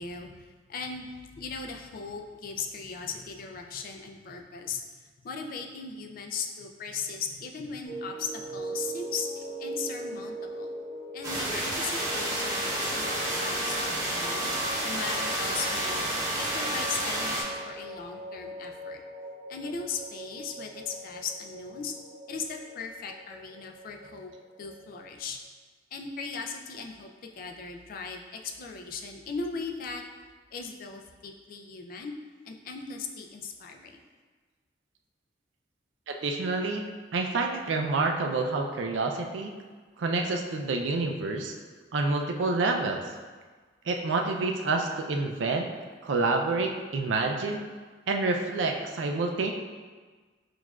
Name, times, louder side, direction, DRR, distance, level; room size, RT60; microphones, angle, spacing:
voice 1, 0.0-4.8 5.2-10.7 11.1-14.5 14.8-16.1 16.4-19.0 19.5-21.9 22.3-24.3 24.6-25.4 25.9-28.2 28.6-30.0 30.5-32.1 32.5-34.0, left 5 dB, 50° left, 3 dB, 0.4 m, -38 dB
sound 1, 7.8-25.2, right 1 dB, 65° right, 1.4 m, -41 dB
sound 2, 11.2-17.4, right 1 dB, 20° right, 0.9 m, -30 dB
voice 2, 36.1-36.9 37.1-39.5 40.0-41.5 41.9-43.0 43.9-45.7 46.0-47.6 48.1-49.5, right 3 dB, 90° right, 3 dB, 0.4 m, -28 dB
6.1 x 2.4 x 2.3 m, 1.4 s
head